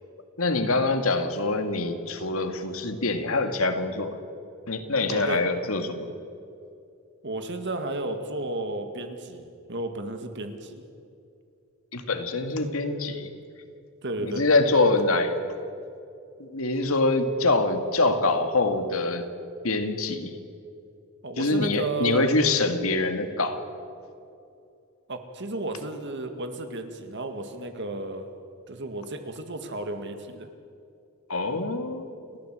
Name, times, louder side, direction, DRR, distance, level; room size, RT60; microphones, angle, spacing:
voice 1, 0.4-4.2 4.7-6.1 11.9-13.3 14.2-15.3 16.4-19.2 19.6-20.3 21.4-23.6 31.3-32.1, left 2 dB, 85° left, 7 dB, 1.9 m, -25 dB
voice 2, 5.1-5.4 7.2-10.8 14.0-14.5 21.2-22.3 25.1-28.3 28.7-30.5, right 2 dB, 60° right, 7 dB, 2.0 m, -33 dB
29.5 x 13.5 x 7.8 m, 2.5 s
head